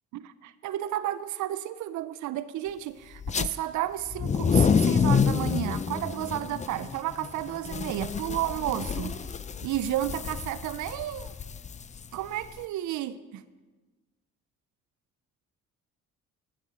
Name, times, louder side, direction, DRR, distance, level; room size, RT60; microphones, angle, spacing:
voice 1, 0.1-9.2 9.6-11.3 12.1-13.4, right 13 dB, 75° right, 0.5 m, -32 dB
sound 1, 3.2-3.5 4.1-12.6, left 6 dB, 25° left, 0.4 m, -28 dB
9.0 x 8.4 x 7.4 m
cardioid pair, 90°, 30 cm